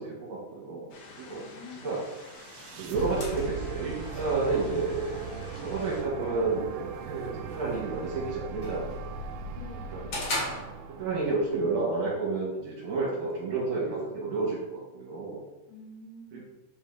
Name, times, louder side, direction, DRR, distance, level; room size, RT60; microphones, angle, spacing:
voice 1, 0.0-1.4 1.8-2.0 2.8-5.2 5.6-9.1 9.9-10.0 11.0-15.4 16.3-16.4, right 3 dB, 55° right, -5 dB, 2.8 m, -31 dB
sound 1, 0.9-6.0, left 3 dB, 65° left, 2.3 m, -49 dB
voice 2, 1.3-1.9 9.6-10.1 15.7-16.4, left 2 dB, 85° left, -3 dB, 3.0 m, -47 dB
sound 2, 2.0-12.2, right 5 dB, 85° right, 2.0 m, -39 dB
sound 3, 2.3-11.3, left 1 dB, 45° left, 2.0 m, -42 dB
6.4 x 4.0 x 3.9 m, 1.1 s
omnidirectional pair, 4.6 m